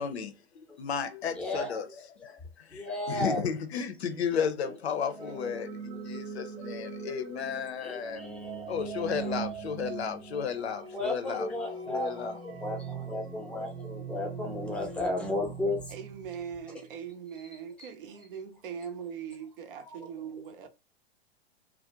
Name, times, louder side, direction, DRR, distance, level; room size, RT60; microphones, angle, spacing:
voice 1, 0.0-1.9 2.2-8.4 8.7-11.5 11.9-12.4, left 7 dB, 75° left, 0.6 m, -34 dB
voice 2, 1.4-1.8 2.7-3.4 4.6-4.7 5.0-5.5 7.8-9.4 10.9-15.8 17.8-17.9 19.8-20.1 20.6-20.7, left 1 dB, 5° left, 0.6 m, -34 dB
sound 1, 4.8-16.7, right 5 dB, 75° right, 1.0 m, -41 dB
voice 3, 15.9-20.7, right 7 dB, 55° right, 0.6 m, -41 dB
2.4 x 2.0 x 2.7 m
hypercardioid pair, 110°, 32 cm